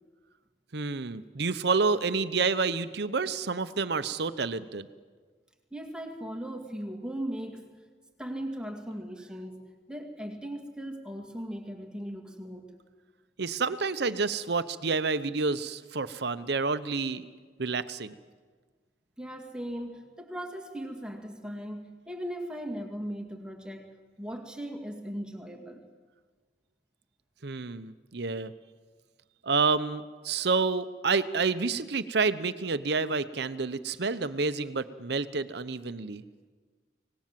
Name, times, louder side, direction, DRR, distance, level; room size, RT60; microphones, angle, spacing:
voice 1, 0.7-4.9 13.4-17.2 17.6-18.1 27.4-28.5 29.4-36.2, right 4 dB, 65° right, 13 dB, 0.9 m, -29 dB
voice 2, 5.7-7.7 8.2-12.7 19.2-23.9 24.2-25.8, equal, 5° right, 3 dB, 2.3 m, -38 dB
25.5 x 19.0 x 7.6 m, 1.5 s
head